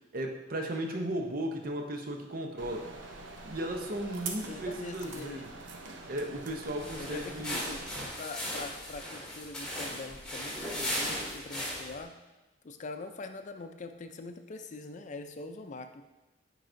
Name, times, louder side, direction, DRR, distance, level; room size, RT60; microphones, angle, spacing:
voice 1, 0.1-2.9 3.5-5.5 6.1-7.6, right 1 dB, 50° right, 3 dB, 0.7 m, -35 dB
sound 1, 2.6-8.1, right 3 dB, 85° right, 0.7 m, -44 dB
voice 2, 4.5-5.4 7.0-7.9 8.2-12.1 12.6-16.0, left 3 dB, 40° left, 7 dB, 0.4 m, -43 dB
sound 2, 6.8-12.0, left 1 dB, 5° left, 1.6 m, -37 dB
9.1 x 4.7 x 2.6 m, 1.1 s
head